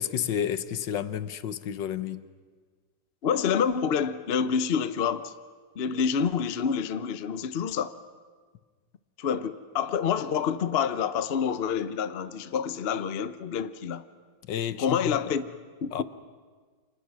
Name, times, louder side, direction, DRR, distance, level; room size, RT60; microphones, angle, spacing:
voice 1, 0.0-2.2 14.5-15.2 15.9-16.0, left 9 dB, 75° left, 1.6 m, -31 dB
voice 2, 3.2-5.3 5.8-8.0 9.2-14.1 14.8-15.4 15.8-16.0, left 7 dB, 45° left, 0.8 m, -27 dB
29.5 x 26.0 x 6.2 m
omnidirectional pair, 2.0 m